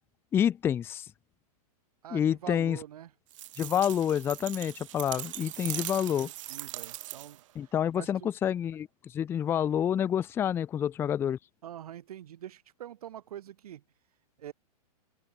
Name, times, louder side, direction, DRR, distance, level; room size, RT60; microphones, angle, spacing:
voice 1, 0.3-1.1 2.1-2.8 3.6-6.3 7.6-11.4, left 9 dB, 10° left, 0.5 m, -28 dB
voice 2, 2.0-3.1 5.4-8.3 11.6-13.8 14.4-14.5, right 11 dB, 70° right, 5.6 m, -45 dB
sound 1, 3.3-7.5, right 15 dB, 55° right, 1.3 m, -40 dB
hypercardioid pair, 155°, 20 cm